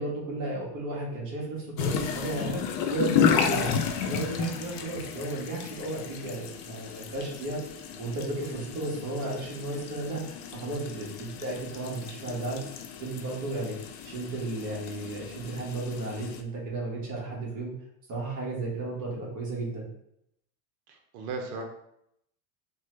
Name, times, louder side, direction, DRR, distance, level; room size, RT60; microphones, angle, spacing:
voice 1, 0.0-2.6 2.9-3.7 4.0-7.6 8.0-12.6 13.0-13.7 14.0-17.7 18.1-19.9, right 2 dB, 40° right, -3 dB, 1.2 m, -34 dB
sound 1, 1.8-16.4, left 7 dB, 60° left, 0.5 m, -32 dB
voice 2, 20.9-21.6, right 4 dB, 75° right, 2 dB, 0.7 m, -36 dB
3.3 x 2.2 x 3.0 m, 0.77 s
supercardioid pair, 120°, 46 cm